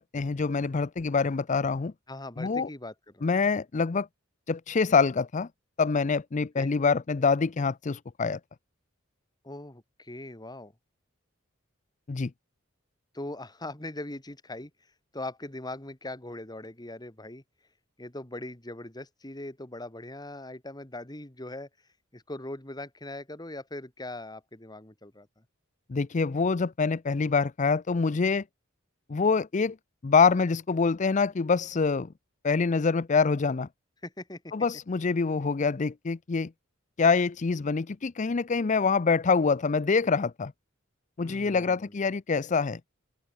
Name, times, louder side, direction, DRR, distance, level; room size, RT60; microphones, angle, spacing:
voice 1, 0.0-1.9 2.4-2.7 3.2-4.1 4.5-5.5 5.8-8.4 12.1-12.3 25.9-28.4 29.1-29.8 30.0-32.1 32.4-33.7 34.5-36.5 37.0-40.5 41.2-42.8, left 4 dB, 35° left, 0.5 m, -25 dB
voice 2, 2.1-3.3 6.6-6.7 9.4-10.7 13.1-14.7 15.1-17.4 18.0-21.7 22.1-25.4 34.0-34.5 41.2-42.0, left 2 dB, 20° left, 2.4 m, -40 dB
head